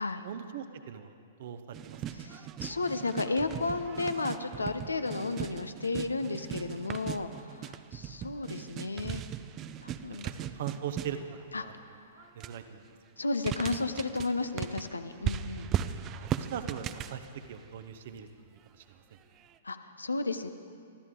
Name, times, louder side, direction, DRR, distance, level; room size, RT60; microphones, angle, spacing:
voice 1, 0.2-2.0 10.2-11.2 11.5-11.7 12.3-12.9 16.1-18.5 18.7-19.0, right 9 dB, 55° right, 8 dB, 1.0 m, -41 dB
sound 1, 1.7-11.4 12.2-12.6 13.3-18.0 19.4-19.6, right 10 dB, 30° right, 0.6 m, -38 dB
voice 2, 2.1-9.2 9.8-10.3 11.5-11.7 12.1-12.3 13.2-15.7 19.6-20.5, left 3 dB, 85° left, 9 dB, 0.9 m, -33 dB
24.5 x 14.0 x 3.8 m, 2.2 s
figure-of-eight pair, 110°, 0 cm